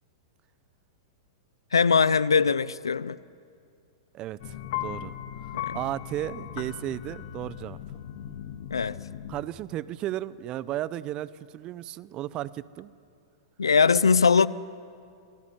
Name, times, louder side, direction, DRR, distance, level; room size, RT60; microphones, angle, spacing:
voice 1, 1.7-3.2 5.5-5.8 8.7-9.0 13.6-14.5, left 5 dB, 80° left, 0.7 m, -21 dB
voice 2, 4.1-4.6 4.8-5.1 5.7-7.8 9.3-12.9, right 13 dB, 35° right, 0.8 m, -34 dB
sound 1, 4.4-9.4, left 11 dB, 55° left, 2.0 m, -37 dB
27.5 x 20.0 x 9.7 m
figure-of-eight pair, 105°, 2 cm